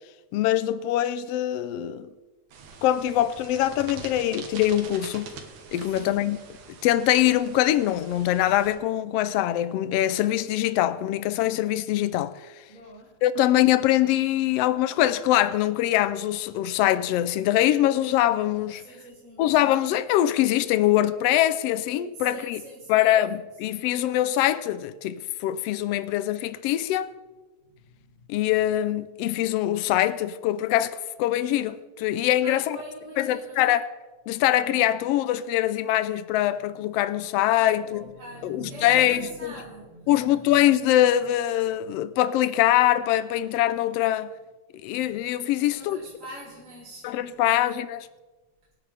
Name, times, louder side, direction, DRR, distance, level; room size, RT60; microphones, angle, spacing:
voice 1, 0.3-2.1 2.8-5.3 5.7-6.4 6.7-12.6 13.2-18.8 19.4-22.6 22.9-27.1 28.3-32.8 33.2-33.9 34.3-38.1 38.4-39.5 40.1-44.3 44.8-46.0 47.0-48.1, left 13 dB, 80° left, 1.4 m, -23 dB
sound 1, 2.5-8.7, right 5 dB, 90° right, 2.9 m, -44 dB
voice 2, 12.7-13.2 18.8-19.4 22.1-23.2 27.7-28.3 32.4-33.6 36.8-37.1 37.6-40.8 45.0-45.1 45.6-47.2 47.6-47.8, right 1 dB, 25° right, 2.9 m, -44 dB
24.5 x 9.8 x 3.5 m
omnidirectional pair, 3.4 m